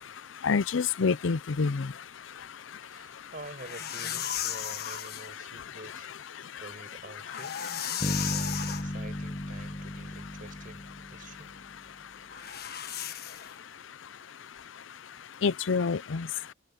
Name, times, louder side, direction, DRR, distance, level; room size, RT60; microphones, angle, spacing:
voice 1, 0.4-1.9 15.4-16.3, left 5 dB, 80° left, 0.5 m, -27 dB
voice 2, 2.8-6.1 6.6-7.6 8.0-11.5, right 2 dB, 45° right, 7.7 m, -48 dB
sound 1, 3.4-5.3 7.1-8.9 12.3-13.6, left 9 dB, 50° left, 1.5 m, -35 dB
sound 2, 8.0-12.0, left 1 dB, 30° left, 1.0 m, -35 dB
head